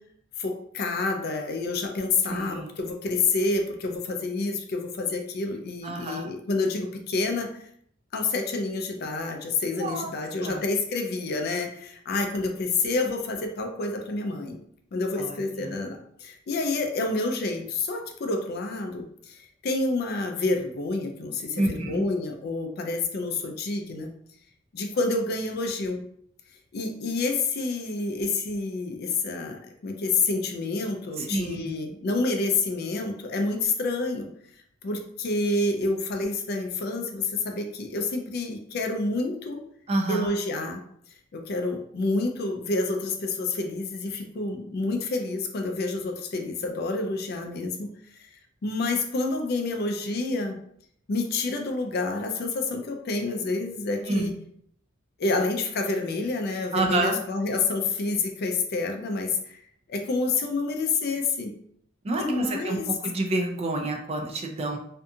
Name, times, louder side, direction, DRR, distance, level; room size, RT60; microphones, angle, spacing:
voice 1, 0.4-7.5 8.1-14.6 14.9-24.1 24.7-26.0 26.7-34.3 34.8-39.6 40.1-40.8 41.3-47.9 48.6-50.6 51.1-54.3 55.2-59.6 59.9-61.5 62.2-62.9, left 3 dB, 50° left, 4 dB, 0.4 m, -28 dB
voice 2, 2.3-2.7 5.8-6.3 9.7-10.1 10.4-10.6 15.2-15.7 21.6-22.0 31.2-31.7 39.9-40.3 54.0-54.3 56.7-57.2 62.0-64.8, right 2 dB, 30° right, 2 dB, 0.3 m, -28 dB
2.6 x 2.3 x 2.6 m, 0.67 s
head